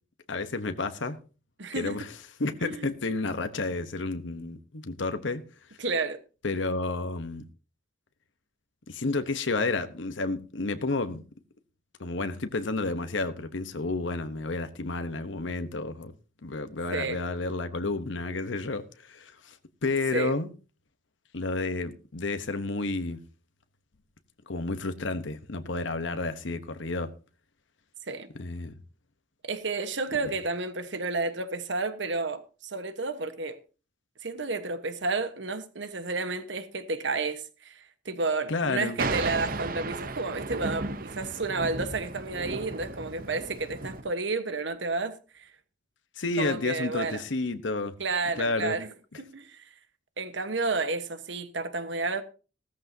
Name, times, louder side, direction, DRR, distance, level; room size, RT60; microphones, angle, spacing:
voice 1, 0.3-1.2 1.7-2.1 2.4-5.4 6.4-7.4 8.9-11.2 12.0-16.1 16.4-19.6 19.8-20.5 21.3-23.2 24.5-27.1 28.4-28.8 38.5-39.0 46.2-47.9 48.4-48.8, left 3 dB, 75° left, 1.0 m, -31 dB
voice 2, 1.6-2.0 2.6-2.9 5.8-6.2 16.9-17.2 20.1-20.3 28.1-28.3 29.4-33.6 34.2-45.5 46.4-47.2 48.0-49.6 50.2-52.2, right 3 dB, 70° right, 1.3 m, -31 dB
Thunder, 39.0-44.0, right 3 dB, 45° right, 0.8 m, -34 dB
16.0 x 14.0 x 2.8 m
head